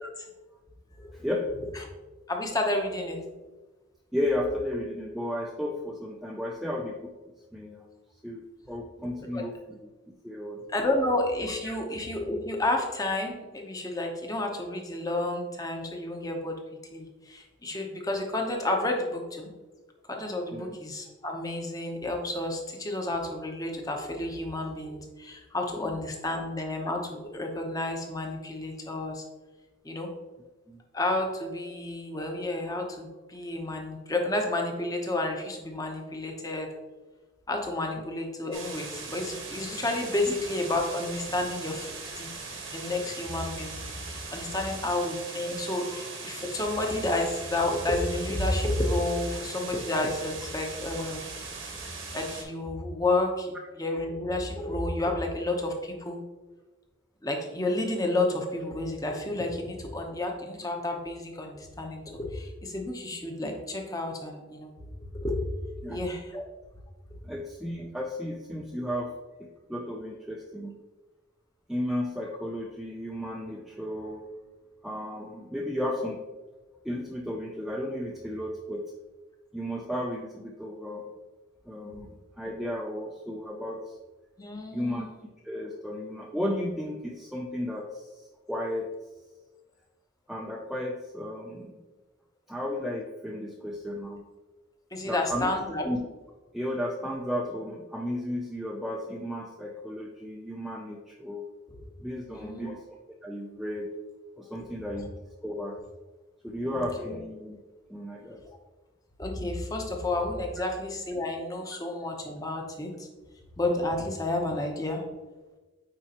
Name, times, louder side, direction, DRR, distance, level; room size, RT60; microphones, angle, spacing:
voice 1, 1.1-1.5 4.1-7.1 7.5-7.9 8.2-9.9 10.2-10.6 11.6-11.7 20.5-20.7 25.8-26.0 30.7-30.8 40.3-40.4 65.8-66.0 67.2-69.1 69.4-70.7 71.7-74.3 74.8-76.2 76.8-78.8 79.5-81.1 81.7-82.1 82.4-84.0 84.7-85.1 85.4-88.9 90.3-91.8 92.5-94.2 95.0-95.5 95.8-96.1 96.5-101.5 102.0-102.8 103.2-103.9 104.4-105.1 105.4-105.8 106.4-107.6 107.9-108.4 111.7-111.8, left 1 dB, ahead, -1 dB, 0.4 m, -34 dB
voice 2, 2.3-3.2 9.3-9.4 10.7-16.6 16.9-19.5 20.1-29.2 29.8-30.1 30.9-36.7 37.5-42.3 42.7-43.7 44.3-51.2 52.1-56.2 57.2-64.7 65.2-65.4 65.8-66.4 84.4-85.1 94.9-95.9 101.7-101.8 102.3-102.7 104.6-104.7 106.6-106.8 109.2-113.1 113.6-115.0, left 2 dB, 20° left, 2 dB, 0.8 m, -31 dB
sound 1, 38.5-52.4, right 4 dB, 85° right, 1.6 m, -40 dB
8.9 x 4.3 x 2.9 m, 1.2 s
head